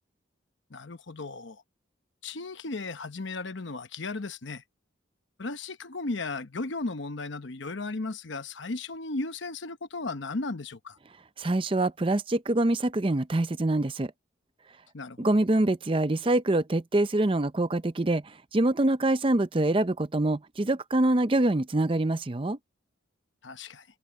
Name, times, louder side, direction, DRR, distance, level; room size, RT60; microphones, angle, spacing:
voice 1, 0.7-1.6 2.2-4.6 5.4-11.0 14.9-15.3 23.4-23.8, left 3 dB, 70° left, 1.0 m, -35 dB
voice 2, 11.4-14.1 15.2-18.2 18.5-22.6, right 2 dB, 25° right, 0.6 m, -25 dB
head